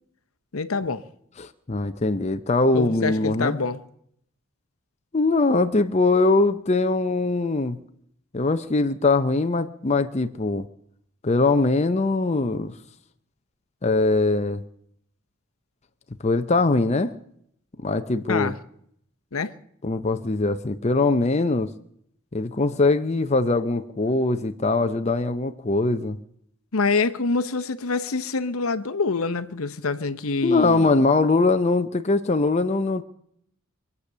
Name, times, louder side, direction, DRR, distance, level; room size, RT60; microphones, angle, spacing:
voice 1, 0.5-1.0 2.7-3.8 18.3-18.6 19.3-19.5 26.7-30.9, left 4 dB, 75° left, 0.8 m, -26 dB
voice 2, 1.4-3.6 5.1-7.8 8.3-10.7 11.2-12.7 13.8-14.6 16.2-17.1 17.8-18.5 19.8-21.7 22.3-26.2 30.4-33.0, left 3 dB, 30° left, 0.6 m, -22 dB
24.5 x 8.3 x 6.7 m
head